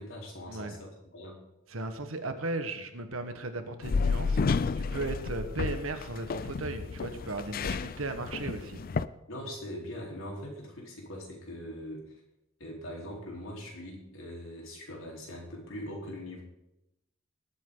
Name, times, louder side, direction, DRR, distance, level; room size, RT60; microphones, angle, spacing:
voice 1, 0.0-1.4 9.3-12.2 12.6-16.4, equal, 75° left, -2 dB, 4.2 m, -41 dB
voice 2, 1.7-8.8, right 2 dB, 85° right, 8 dB, 1.5 m, -36 dB
sound 1, 3.8-9.1, left 4 dB, 45° left, 0.4 m, -31 dB
19.5 x 8.5 x 4.0 m, 0.90 s
head